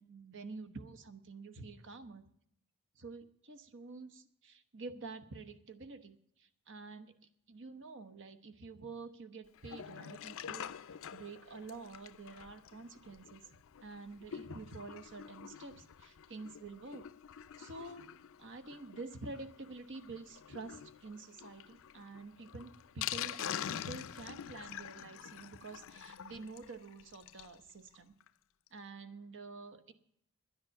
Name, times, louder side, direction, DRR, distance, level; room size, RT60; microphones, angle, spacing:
voice 1, 0.0-2.2 3.0-7.1 7.5-10.7 11.1-13.4 13.8-17.0 17.6-18.1 18.4-28.1 28.7-29.9, right 3 dB, 60° right, 11 dB, 1.0 m, -48 dB
Sink (filling or washing), 9.5-27.6 27.9-28.0 28.2-28.3 28.7-28.8, left 9 dB, 65° left, 0.5 m, -46 dB
10.5 x 10.5 x 7.5 m, 0.71 s
head